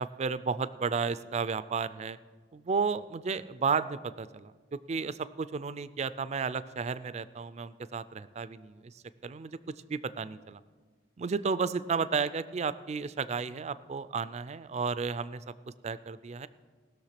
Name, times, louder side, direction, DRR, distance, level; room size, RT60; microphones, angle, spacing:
voice 1, 0.0-2.2 2.5-8.9 9.2-9.6 9.9-10.6 11.2-15.4 15.8-16.5, right 5 dB, 40° right, 15 dB, 0.4 m, -33 dB
19.0 x 6.4 x 5.8 m, 1.4 s
head